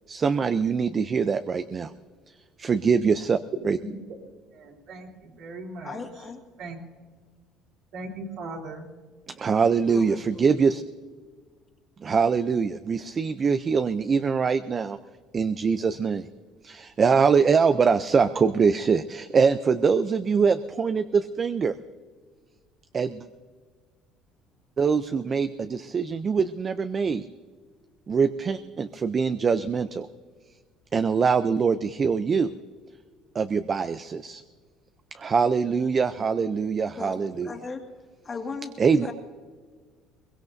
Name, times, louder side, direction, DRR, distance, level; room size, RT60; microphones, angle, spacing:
voice 1, 0.1-1.9 2.6-3.4 3.7-3.8 9.3-10.8 12.0-15.0 15.3-16.3 16.6-21.7 22.9-23.3 24.8-27.2 28.1-30.1 30.9-32.5 33.3-34.4 35.1-37.5 38.8-39.1, right 5 dB, 30° right, 11 dB, 0.5 m, -23 dB
voice 2, 3.5-3.9 4.5-6.3 6.6-6.8 7.9-8.9, right 3 dB, 55° right, -1 dB, 3.5 m, -38 dB
voice 3, 5.8-6.4 9.9-10.8 37.0-37.8 38.2-39.1, left 4 dB, 25° left, 2 dB, 2.1 m, -37 dB
22.5 x 21.5 x 2.7 m, 1.5 s
cardioid pair, 140°, 0 cm